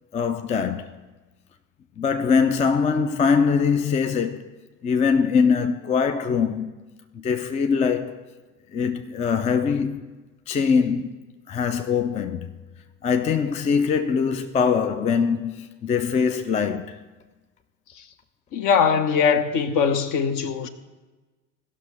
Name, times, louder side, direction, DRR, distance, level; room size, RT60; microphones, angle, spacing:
voice 1, 0.1-0.9 2.0-4.5 4.8-6.7 7.1-8.2 8.7-10.1 10.5-11.2 11.5-12.6 13.0-17.0, left 6 dB, 15° left, 0.4 m, -22 dB
voice 2, 18.5-20.7, left 6 dB, 50° left, 0.9 m, -21 dB
16.0 x 6.2 x 4.1 m
figure-of-eight pair, 55°, 43 cm